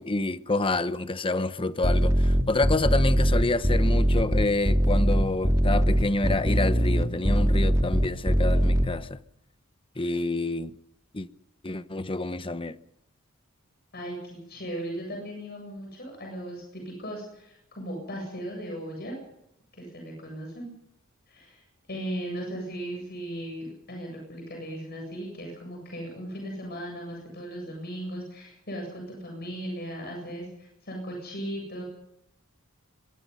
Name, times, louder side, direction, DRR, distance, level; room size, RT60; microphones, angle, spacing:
voice 1, 0.0-9.2 10.0-10.7 11.1-11.3 11.6-12.8, left 2 dB, 25° left, 1.0 m, -28 dB
sound 1, 1.8-8.8, equal, 15° right, 2.4 m, -21 dB
voice 2, 13.9-19.2 19.7-20.7 21.3-31.8, right 1 dB, 50° left, 7.9 m, -37 dB
23.5 x 22.5 x 5.6 m
head